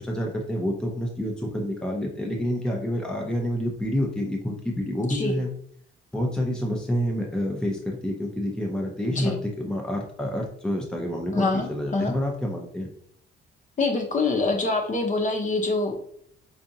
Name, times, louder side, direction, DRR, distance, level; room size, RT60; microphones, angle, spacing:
voice 1, 0.0-5.5 6.1-12.9, equal, 5° left, 0 dB, 0.6 m, -28 dB
voice 2, 11.3-12.1 13.8-15.9, left 3 dB, 40° left, 2 dB, 0.9 m, -25 dB
4.7 x 2.4 x 2.7 m, 0.65 s
cardioid pair, 90°, 20 cm